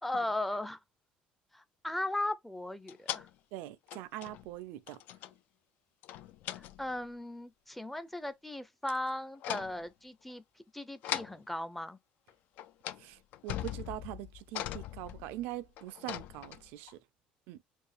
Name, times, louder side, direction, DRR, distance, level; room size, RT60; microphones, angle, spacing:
voice 1, 0.0-0.8 1.5-3.3 6.5-10.4 10.7-12.0, left 1 dB, 5° left, 0.5 m, -37 dB
sound 1, 2.9-3.3 3.9-4.6 4.9-5.3 6.0-7.0 8.9-9.1 9.4-9.8 11.0-11.4 12.3-12.4 12.6-13.0 13.3-16.9, left 12 dB, 65° left, 0.4 m, -40 dB
voice 2, 3.5-5.0 13.0-17.0 17.5-17.6, right 15 dB, 80° right, 0.4 m, -43 dB
4.4 x 2.4 x 3.3 m
cardioid pair, 125°, 3 cm